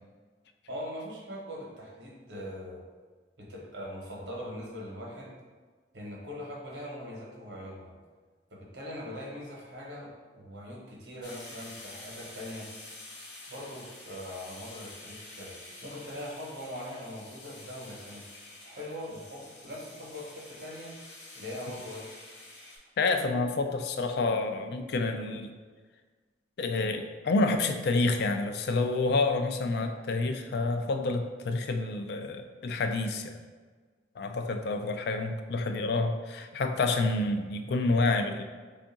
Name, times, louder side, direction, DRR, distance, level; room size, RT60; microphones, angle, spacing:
voice 1, 0.7-2.8 3.4-5.3 5.9-7.9 8.5-12.7 13.5-18.2 18.6-21.0 21.3-22.1, equal, 80° right, -2 dB, 0.9 m, -41 dB
sound 1, 11.2-22.8, left 2 dB, 80° left, 0.9 m, -48 dB
voice 2, 23.0-25.6 26.6-33.4 34.2-38.4, left 3 dB, 60° left, 6 dB, 0.3 m, -28 dB
3.5 x 2.4 x 3.9 m, 1.4 s
head